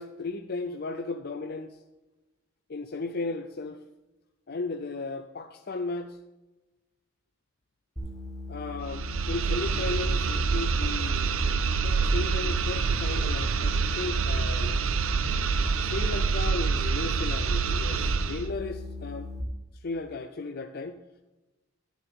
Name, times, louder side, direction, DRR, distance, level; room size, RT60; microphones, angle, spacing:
voice 1, 0.0-1.8 2.7-3.8 4.5-6.2 8.5-11.3 11.8-14.8 15.8-19.3 19.8-21.0, left 3 dB, 50° left, 6 dB, 0.5 m, -35 dB
sound 1, 8.0-19.4, left 3 dB, 5° left, 1.6 m, -39 dB
sound 2, 8.8-18.5, right 5 dB, 90° right, 0.7 m, -27 dB
12.0 x 9.7 x 3.7 m, 1.0 s
head